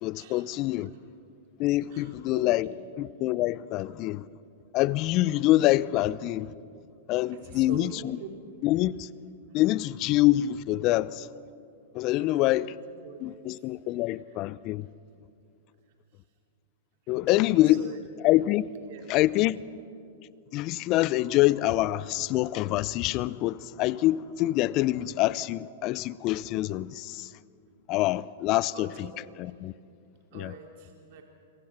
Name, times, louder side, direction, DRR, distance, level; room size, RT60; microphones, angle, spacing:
voice 1, 0.0-0.9 1.6-2.7 3.0-4.2 4.7-6.5 7.1-7.9 8.6-9.1 9.5-11.3 11.9-12.8 13.2-14.9 17.1-17.8 18.2-18.7 19.1-19.6 20.5-27.3 27.9-29.1 29.4-29.7 30.3-30.5, left 16 dB, 40° left, 0.6 m, -25 dB
voice 2, 1.9-2.8 7.3-8.3 12.2-13.5 14.1-14.4 17.3-18.0 18.9-19.6 28.7-29.3 30.3-31.2, right 6 dB, 55° right, 2.7 m, -46 dB
27.0 x 23.0 x 5.9 m
hypercardioid pair, 110°, 0 cm